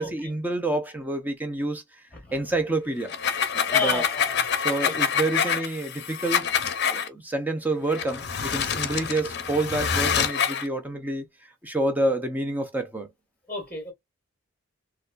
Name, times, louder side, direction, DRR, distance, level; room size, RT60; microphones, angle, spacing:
voice 1, 0.0-1.8 2.3-3.1 3.5-4.0 4.6-6.5 6.9-11.2 11.6-13.1, right 2 dB, 10° right, 0.7 m, -28 dB
sound 1, 3.0-7.1 7.9-10.7, left 7 dB, 50° left, 0.6 m, -26 dB
voice 2, 3.7-4.4 4.8-5.0 13.5-13.9, left 4 dB, 5° left, 1.4 m, -30 dB
4.1 x 2.3 x 2.4 m
head